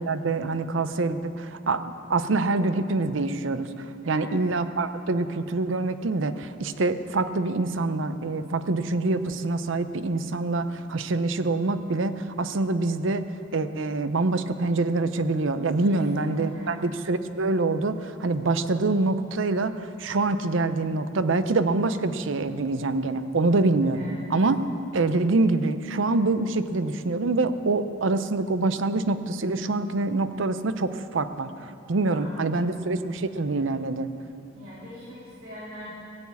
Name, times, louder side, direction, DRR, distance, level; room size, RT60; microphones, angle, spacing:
voice 1, 0.0-13.3 13.5-24.6 24.9-34.1, right 3 dB, 70° right, 11 dB, 0.6 m, -25 dB
voice 2, 4.0-4.3 15.8-16.8 23.9-24.3 32.1-32.7 34.5-35.9, left 1 dB, 90° right, -10 dB, 3.6 m, -42 dB
16.5 x 7.2 x 8.4 m, 2.5 s
head